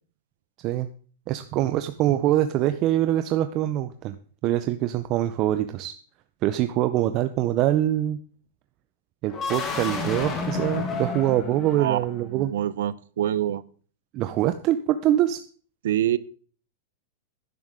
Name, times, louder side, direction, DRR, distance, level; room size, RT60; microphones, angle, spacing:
voice 1, 1.3-4.2 4.4-5.9 6.4-8.2 9.2-12.5 14.1-15.4, right 13 dB, 30° right, 9 dB, 0.5 m, -24 dB
sound 1, 9.3-12.3, left 4 dB, 20° left, 1.7 m, -31 dB
voice 2, 11.7-12.1 12.3-13.6 15.8-16.2, right 12 dB, 75° right, 17 dB, 0.7 m, -25 dB
12.5 x 10.5 x 3.7 m, 0.43 s
supercardioid pair, 170°, 0 cm